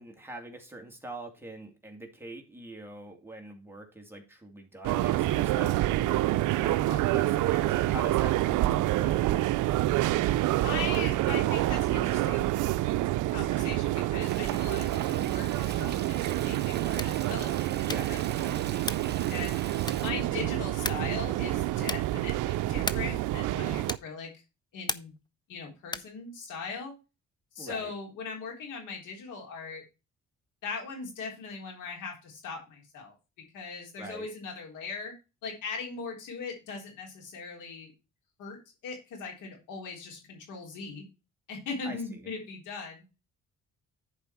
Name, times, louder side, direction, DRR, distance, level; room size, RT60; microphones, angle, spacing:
voice 1, 0.0-9.5 16.8-17.1 17.8-18.2 27.6-27.9 34.0-34.3 41.8-42.2, right 1 dB, 5° right, 1 dB, 2.4 m, -43 dB
sound 1, 4.8-24.0, right 16 dB, 85° right, 0.6 m, -27 dB
voice 2, 10.6-12.8 13.3-18.9 19.3-19.6 20.0-24.3 24.7-25.1 25.5-26.9 27.6-29.8 30.6-33.1 33.5-35.1 35.4-37.9 38.4-38.6 38.8-41.0 41.5-43.0, left 4 dB, 85° left, 0 dB, 3.8 m, -39 dB
Stream, 14.2-20.1, right 7 dB, 35° right, 0.9 m, -42 dB
sound 2, 16.9-17.3 17.8-18.2 18.8-19.2 19.8-20.2 20.8-21.2 21.8-22.2 22.8-23.2 23.8-24.2 24.9-25.3 25.8-26.2, left 3 dB, 15° left, 0.6 m, -36 dB
10.5 x 4.9 x 4.5 m, 0.28 s
cardioid pair, 90°, 30 cm